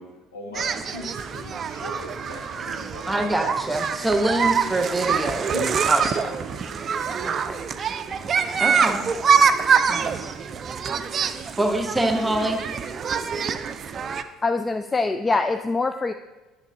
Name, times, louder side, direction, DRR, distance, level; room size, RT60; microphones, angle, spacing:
voice 1, 0.0-3.4 5.5-7.3, left 2 dB, 80° left, 0 dB, 1.5 m, -40 dB
sound 1, 0.5-14.2, right 6 dB, 40° right, 0.5 m, -25 dB
voice 2, 3.1-5.5 5.9-6.3 7.2-7.6 8.6-9.0 9.9-10.3 11.6-12.6, right 1 dB, 15° right, 5 dB, 1.2 m, -25 dB
voice 3, 14.4-16.1, left 3 dB, 20° left, 8 dB, 0.4 m, -24 dB
10.5 x 7.2 x 2.9 m, 1.2 s
figure-of-eight pair, 60°, 0 cm